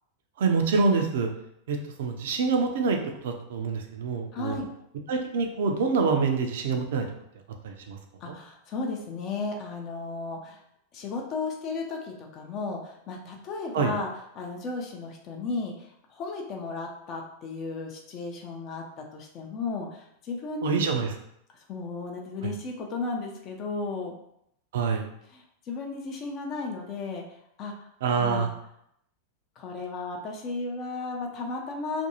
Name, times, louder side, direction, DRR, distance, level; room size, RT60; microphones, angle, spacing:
voice 1, 0.4-1.3 1.7-4.6 5.1-7.1 7.6-8.0 8.2-8.3 13.7-13.9 20.6-21.1 22.4-22.5 24.7-25.1 28.0-28.5, right 4 dB, 55° right, 4 dB, 0.4 m, -26 dB
voice 2, 4.3-4.7 8.2-10.6 10.9-14.1 14.4-20.8 21.7-24.1 25.3-27.2 27.6-27.7 28.2-28.5 29.6-32.1, left 3 dB, 35° left, 1 dB, 0.5 m, -34 dB
2.5 x 2.2 x 2.8 m, 0.75 s
figure-of-eight pair, 90°, 0 cm